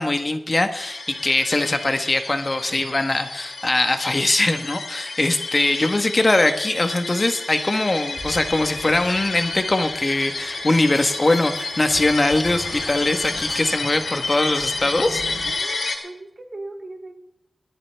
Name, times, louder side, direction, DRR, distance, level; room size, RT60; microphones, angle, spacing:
voice 1, 0.0-15.2, left 2 dB, 35° left, 8 dB, 1.1 m, -21 dB
sound 1, 0.8-15.9, left 3 dB, 90° left, 3.7 m, -31 dB
sound 2, 8.1-15.5, right 1 dB, 15° right, 3.0 m, -40 dB
voice 2, 15.4-17.1, right 2 dB, 45° right, 2 dB, 2.6 m, -38 dB
21.0 x 13.5 x 3.4 m, 0.82 s
wide cardioid pair, 80°, 0 cm